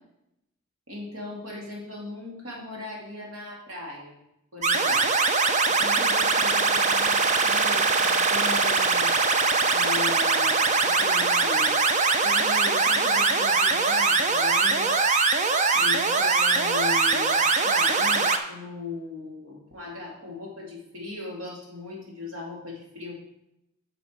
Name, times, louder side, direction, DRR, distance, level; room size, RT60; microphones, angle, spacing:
voice 1, 0.9-4.1 4.5-5.1 5.7-9.1 9.6-11.9 12.2-14.9 15.7-23.1, left 2 dB, 65° right, -2 dB, 2.7 m, -38 dB
sound 1, 4.6-18.4, right 4 dB, 35° right, 0.6 m, -22 dB
9.4 x 6.6 x 4.6 m, 0.85 s
head